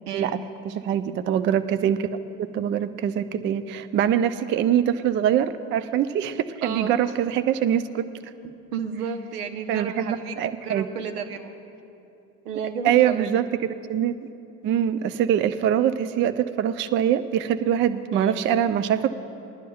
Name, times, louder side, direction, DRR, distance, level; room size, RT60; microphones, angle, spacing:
voice 1, 0.1-0.4 6.6-7.0 8.7-10.4 10.6-11.5 12.4-13.3 18.1-18.4, right 6 dB, 75° right, 6 dB, 1.0 m, -32 dB
voice 2, 0.7-8.0 9.7-10.9 12.8-13.5 13.9-14.1 14.6-19.1, right 10 dB, 25° right, 11 dB, 0.4 m, -23 dB
20.5 x 11.0 x 2.3 m, 2.7 s
hypercardioid pair, 70°, 46 cm